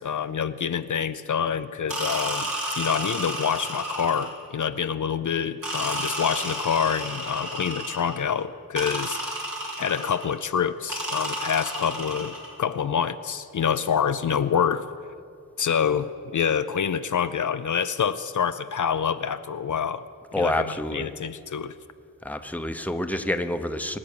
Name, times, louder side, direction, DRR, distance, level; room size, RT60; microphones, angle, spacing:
voice 1, 0.0-9.2 9.8-14.9 15.6-20.1 20.4-21.7, left 7 dB, 65° left, 11 dB, 0.5 m, -26 dB
sound 1, 1.9-4.5 5.6-8.2 8.8-10.3 10.9-12.5, right 1 dB, 70° right, 3.6 m, -31 dB
voice 2, 20.3-21.1 22.2-24.0, left 1 dB, 5° left, 7 dB, 0.8 m, -27 dB
24.5 x 8.3 x 6.7 m, 2.4 s
wide cardioid pair, 75°, 34 cm